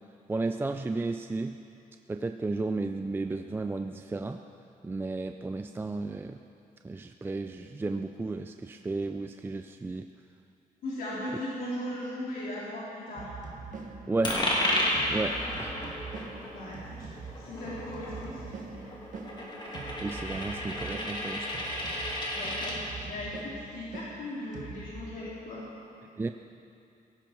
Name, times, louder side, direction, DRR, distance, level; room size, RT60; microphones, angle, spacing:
voice 1, 0.3-1.6 2.1-4.4 4.8-6.4 6.8-10.1 14.1-14.5 15.1-15.7 20.0-21.6 26.2-26.3, right 3 dB, 15° right, 6 dB, 0.4 m, -33 dB
voice 2, 10.8-13.3 15.1-15.3 16.5-17.1 17.4-18.9 22.3-25.6, left 1 dB, 75° left, -8 dB, 3.9 m, -38 dB
sound 1, 13.2-25.0, right 4 dB, 60° right, 1.6 m, -44 dB
Coin (dropping), 14.2-22.8, left 1 dB, 30° left, 2.8 m, -32 dB
17.5 x 17.0 x 4.6 m, 2.6 s
wide cardioid pair, 160°, 15 cm